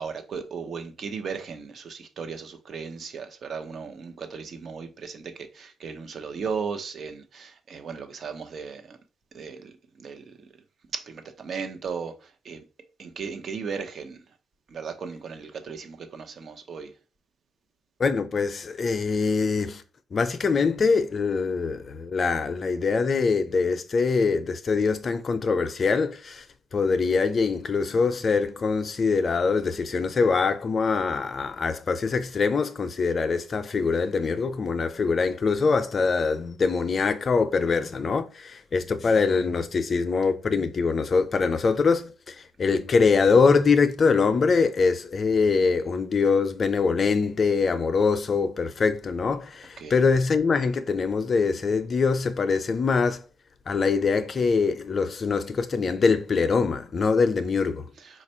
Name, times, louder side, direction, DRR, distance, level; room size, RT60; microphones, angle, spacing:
voice 1, 0.0-9.0 9.3-10.5 10.9-12.6 13.0-14.2 14.7-16.9 49.8-50.0 58.0-58.2, right 5 dB, 55° right, 0.8 m, -36 dB
voice 2, 18.0-19.8 20.1-26.4 26.7-53.2 53.7-57.9, left 4 dB, 40° left, 0.5 m, -23 dB
4.2 x 2.5 x 4.3 m
cardioid pair, 90°, 0 cm